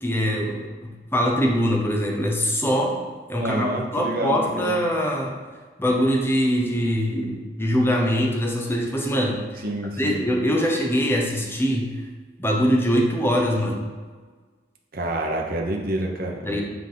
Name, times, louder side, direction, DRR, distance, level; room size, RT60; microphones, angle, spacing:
voice 1, 0.0-3.0 3.3-5.3 5.8-9.6 10.0-11.9 12.4-13.9 16.4-16.6, equal, 15° left, -1 dB, 1.0 m, -23 dB
voice 2, 3.3-4.7 9.6-10.2 14.9-16.6, right 1 dB, 55° right, 0 dB, 1.0 m, -28 dB
8.9 x 3.7 x 3.9 m, 1.5 s
head